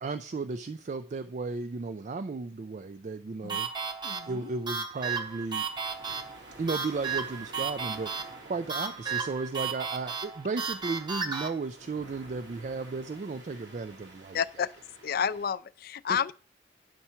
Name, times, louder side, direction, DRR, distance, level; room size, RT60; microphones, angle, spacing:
voice 1, 0.0-3.7 4.3-5.7 6.5-14.4, right 3 dB, 40° right, 0.4 m, -34 dB
sound 1, 3.5-11.5, right 5 dB, 25° right, 0.9 m, -34 dB
voice 2, 4.0-4.4 14.3-14.7 15.0-16.4, left 7 dB, 55° left, 0.4 m, -30 dB
sound 2, 4.9-15.5, right 1 dB, 85° right, 2.2 m, -51 dB
9.6 x 5.6 x 4.4 m
head